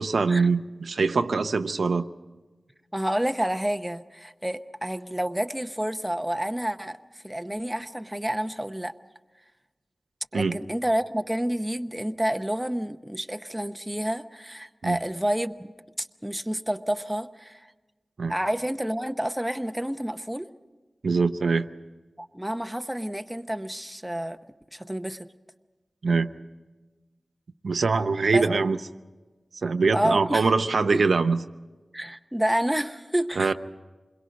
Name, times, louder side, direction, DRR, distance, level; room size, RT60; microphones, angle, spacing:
voice 1, 0.0-2.0 10.3-10.6 14.8-15.0 18.2-18.3 21.0-21.7 26.0-26.3 27.6-28.8 29.6-31.4 33.4-33.5, right 4 dB, 90° right, 9 dB, 0.7 m, -23 dB
voice 2, 2.9-8.9 10.3-15.7 16.0-17.7 18.3-20.5 22.2-24.4 24.7-25.3 28.2-28.5 29.9-30.5 30.9-31.0 31.9-33.5, right 1 dB, 10° right, 8 dB, 0.8 m, -29 dB
27.5 x 22.0 x 5.2 m, 1.2 s
wide cardioid pair, 80°, 0 cm